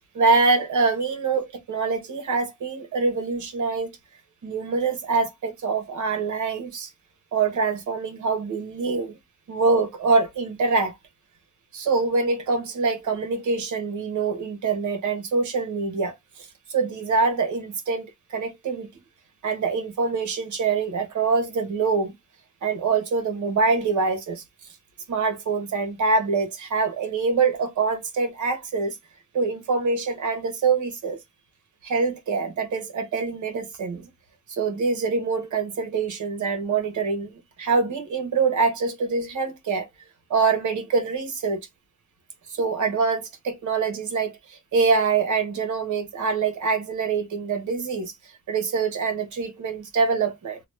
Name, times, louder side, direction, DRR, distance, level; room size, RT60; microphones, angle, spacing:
voice 1, 0.1-3.9 4.4-6.9 7.3-9.2 9.5-10.9 11.7-16.1 16.7-18.9 19.4-22.1 22.6-24.4 25.1-29.0 29.3-31.2 31.8-34.1 34.5-37.3 37.6-39.9 40.3-41.6 42.6-48.1 48.5-50.6, right 4 dB, 65° right, 1.1 m, -24 dB
3.0 x 2.2 x 3.1 m
cardioid pair, 145°, 32 cm